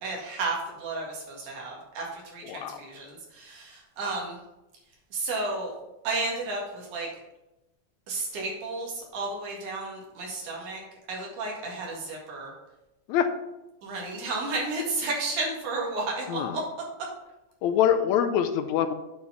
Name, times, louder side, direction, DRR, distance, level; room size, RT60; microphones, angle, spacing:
voice 1, 0.0-4.4 5.1-5.7 6.0-7.1 8.1-10.8 11.1-12.5 13.8-16.6, right 3 dB, 80° right, -2 dB, 3.4 m, -32 dB
voice 2, 2.5-2.8 13.1-13.3 16.3-16.6 17.6-18.9, left 9 dB, 80° left, 9 dB, 1.8 m, -24 dB
8.6 x 4.6 x 5.7 m, 0.97 s
omnidirectional pair, 3.4 m